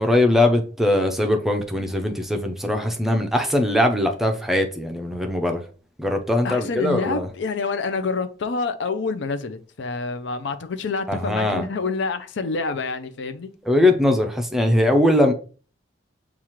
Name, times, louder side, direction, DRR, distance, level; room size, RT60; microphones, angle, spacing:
voice 1, 0.0-5.6 6.0-7.3 11.1-11.7 13.7-15.3, left 1 dB, ahead, 0.5 m, -20 dB
voice 2, 6.4-13.5, left 4 dB, 65° left, 0.5 m, -27 dB
7.1 x 2.4 x 3.0 m
head